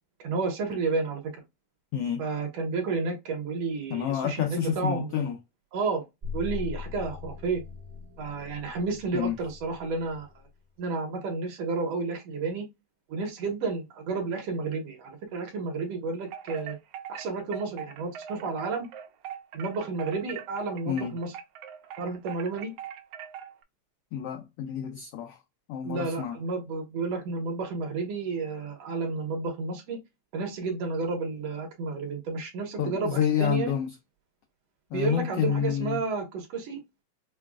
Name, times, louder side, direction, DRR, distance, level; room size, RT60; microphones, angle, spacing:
voice 1, 0.2-1.3 2.2-5.2 5.7-6.0 6.3-7.6 8.2-10.3 10.8-12.7 13.1-16.8 17.1-18.9 19.5-21.3 22.0-22.7 25.9-30.0 30.3-33.8 34.9-36.8, right 4 dB, 65° right, 2.0 m, -31 dB
voice 2, 3.9-5.4 9.1-9.4 20.9-21.1 24.1-25.4 25.7-26.4 32.8-33.9 34.9-36.0, left 8 dB, 85° left, 1.3 m, -28 dB
sound 1, 6.2-10.5, left 6 dB, 30° right, 0.7 m, -40 dB
Wind chime, 16.2-23.6, right 9 dB, 85° right, 1.4 m, -42 dB
6.1 x 2.2 x 2.4 m
omnidirectional pair, 3.3 m